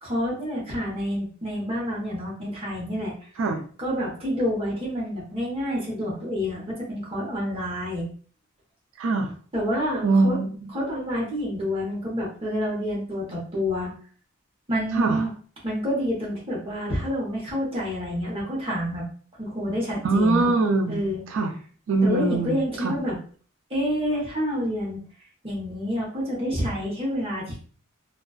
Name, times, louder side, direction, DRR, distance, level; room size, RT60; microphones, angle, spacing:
voice 1, 0.0-3.1 3.8-8.1 9.5-10.4 10.7-13.9 14.7-15.3 15.6-19.0 19.4-20.5 20.9-21.2 22.0-23.2 23.7-25.0 25.4-27.6, equal, 30° right, -4 dB, 0.9 m, -28 dB
voice 2, 9.0-9.3 10.0-10.7 14.9-15.2 20.0-21.0 21.3-21.5 21.9-22.9, right 3 dB, 70° right, 3 dB, 0.4 m, -22 dB
2.4 x 2.3 x 2.2 m, 0.44 s
head